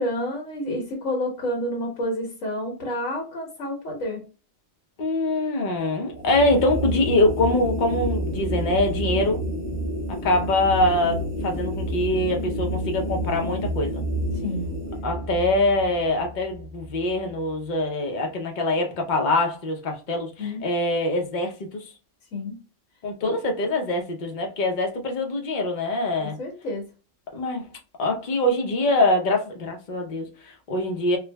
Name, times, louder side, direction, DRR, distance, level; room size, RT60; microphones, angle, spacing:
voice 1, 0.0-4.2 14.4-14.7 20.4-20.6 22.3-22.6 23.2-23.3 26.2-26.8, left 1 dB, 75° left, 1.4 m, -29 dB
voice 2, 5.0-9.4 10.1-14.0 15.0-21.9 23.0-26.4 27.3-27.7 28.0-31.2, left 2 dB, 40° left, 0.8 m, -24 dB
sound 1, 6.1-17.4, equal, 30° right, 1.8 m, -29 dB
4.5 x 2.4 x 2.2 m
omnidirectional pair, 1.3 m